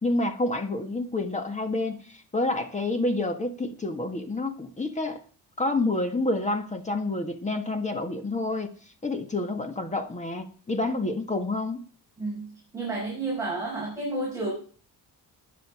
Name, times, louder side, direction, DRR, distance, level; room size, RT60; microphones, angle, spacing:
voice 1, 0.0-5.2 5.6-8.7 9.0-11.9, left 2 dB, 15° left, 7 dB, 1.7 m, -28 dB
voice 2, 12.2-14.5, right 2 dB, 10° right, -5 dB, 6.5 m, -31 dB
19.0 x 10.0 x 5.0 m, 0.42 s
wide cardioid pair, 180°, 41 cm